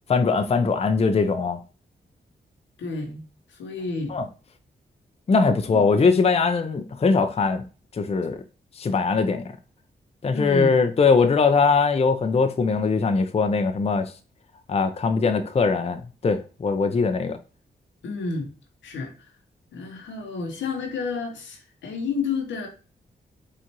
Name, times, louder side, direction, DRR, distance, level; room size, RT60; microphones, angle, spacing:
voice 1, 0.1-1.6 4.1-4.3 5.3-7.6 7.9-8.4 8.8-9.4 10.2-14.1 14.7-17.4, left 4 dB, 35° left, 0.5 m, -21 dB
voice 2, 2.8-4.1 5.7-5.8 10.3-10.8 18.0-18.5 18.8-19.3 19.7-22.7, left 4 dB, 90° left, 0.9 m, -30 dB
4.5 x 2.5 x 2.9 m
cardioid pair, 50°, 19 cm